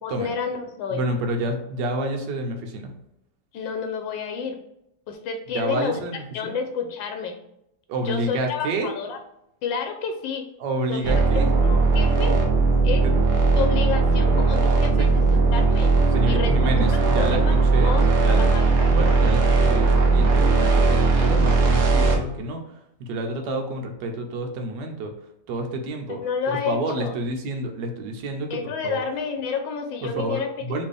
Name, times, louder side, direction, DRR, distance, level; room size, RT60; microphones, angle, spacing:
voice 1, 0.0-1.0 3.5-4.6 5.1-6.0 6.3-7.4 8.0-9.2 9.6-10.4 10.9-12.4 12.8-13.1 13.6-15.2 15.5-15.9 16.3-16.5 16.9-19.0 26.1-27.1 28.5-30.5, left 6 dB, 85° left, 5 dB, 1.3 m, -30 dB
voice 2, 0.9-2.9 5.5-6.5 7.9-8.9 10.6-11.5 13.0-13.1 15.0-15.1 16.1-17.9 18.2-18.5 18.9-22.6 23.0-25.1 25.5-26.2 26.5-28.6 28.8-29.0 30.0-30.8, right 1 dB, 75° right, 4 dB, 1.3 m, -29 dB
sound 1, 11.0-22.1, right 3 dB, 55° right, 0.8 m, -18 dB
4.3 x 3.2 x 3.3 m, 0.81 s
omnidirectional pair, 2.0 m